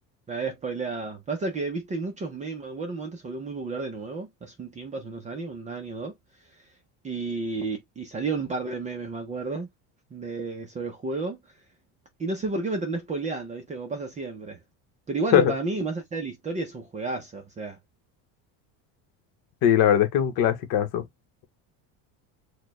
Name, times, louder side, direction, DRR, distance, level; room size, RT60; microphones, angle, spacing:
voice 1, 0.3-6.1 7.0-9.7 10.1-11.4 12.2-14.6 15.1-17.8, right 3 dB, 15° right, 0.5 m, -32 dB
voice 2, 19.6-21.0, left 10 dB, 50° left, 0.9 m, -20 dB
4.4 x 2.2 x 3.0 m
cardioid pair, 170°, 43 cm